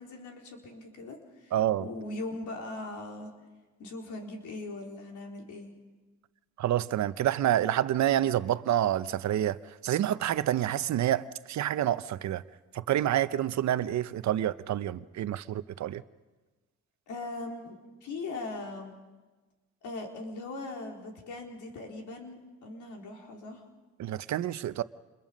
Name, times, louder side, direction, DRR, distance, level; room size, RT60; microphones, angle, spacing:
voice 1, 0.0-1.5 1.8-3.3 3.8-5.7 17.1-18.9 19.8-23.6, left 2 dB, 75° left, 4.3 m, -40 dB
voice 2, 1.5-1.9 6.6-12.4 12.7-16.0 24.0-24.8, right 12 dB, 65° right, 0.8 m, -28 dB
28.5 x 22.0 x 5.3 m
cardioid pair, 90°, 30 cm